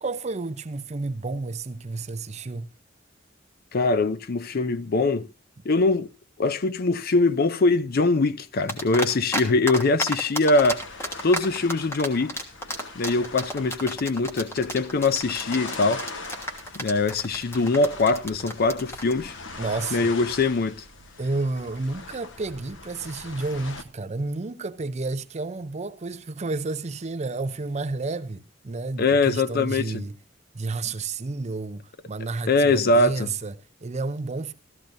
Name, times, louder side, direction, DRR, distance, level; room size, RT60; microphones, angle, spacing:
voice 1, 0.0-2.7 19.6-20.1 21.2-30.2 30.5-34.5, right 3 dB, 35° right, 0.6 m, -31 dB
voice 2, 3.7-5.3 5.6-6.1 6.4-10.8 11.2-12.4 13.0-16.0 16.8-19.3 19.9-20.8 29.0-30.0 32.5-33.3, left 3 dB, 50° left, 0.6 m, -22 dB
sound 1, 8.7-9.4 9.7-19.1, equal, 15° left, 1.4 m, -31 dB
sound 2, 10.5-23.8, left 3 dB, 70° left, 1.1 m, -41 dB
15.0 x 13.5 x 2.6 m
head